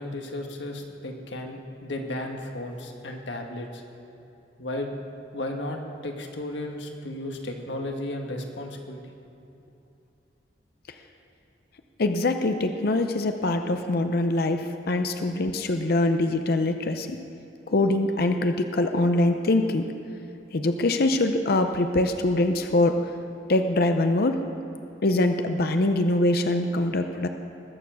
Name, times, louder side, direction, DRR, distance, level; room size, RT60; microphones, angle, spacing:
voice 1, 0.0-3.8 4.6-4.9 5.3-9.1, left 1 dB, 80° left, 3 dB, 1.5 m, -34 dB
voice 2, 12.0-17.2 17.7-19.9 20.5-23.0 23.5-24.4 25.0-27.3, left 2 dB, 55° left, 7 dB, 0.6 m, -23 dB
20.5 x 7.0 x 6.3 m, 2.8 s
head